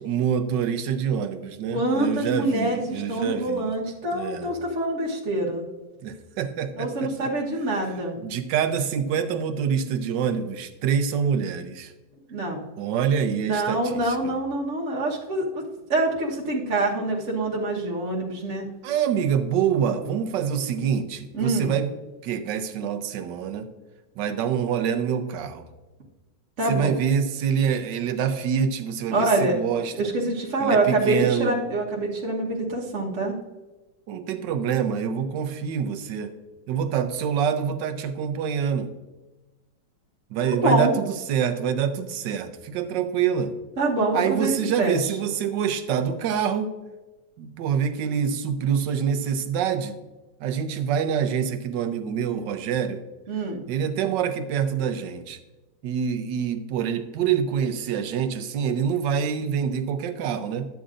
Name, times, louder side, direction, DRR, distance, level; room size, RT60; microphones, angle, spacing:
voice 1, 0.0-3.7 4.1-4.5 6.0-7.1 8.2-11.9 12.8-14.3 18.8-21.9 22.2-23.7 24.2-25.7 26.7-30.1 30.6-31.6 34.1-36.3 36.7-38.9 40.3-43.5 44.1-46.7 47.4-50.0 50.4-53.0 53.7-55.4 55.8-60.7, right 7 dB, 80° right, 8 dB, 1.3 m, -26 dB
voice 2, 1.7-5.7 6.8-8.2 12.3-12.6 13.4-15.6 15.9-18.6 20.0-20.1 21.3-21.7 26.6-27.0 29.1-29.6 29.9-33.4 40.4-40.9 43.8-44.5 44.8-45.0 53.3-53.6, right 2 dB, 45° right, -4 dB, 1.6 m, -25 dB
12.0 x 8.1 x 2.5 m, 1.1 s
omnidirectional pair, 2.0 m